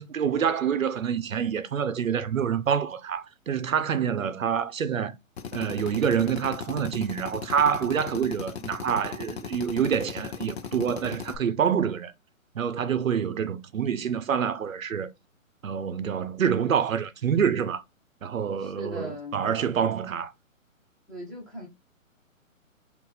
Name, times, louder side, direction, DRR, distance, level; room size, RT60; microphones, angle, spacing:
voice 1, 0.0-5.2 5.5-12.1 12.5-15.1 15.6-17.8 18.2-20.3, right 7 dB, 75° right, 0.7 m, -27 dB
Drill, 5.4-11.4, left 6 dB, 50° left, 0.7 m, -37 dB
voice 2, 18.6-19.4 21.1-21.7, equal, ahead, 1.0 m, -39 dB
4.4 x 2.6 x 3.3 m
figure-of-eight pair, 140°, 41 cm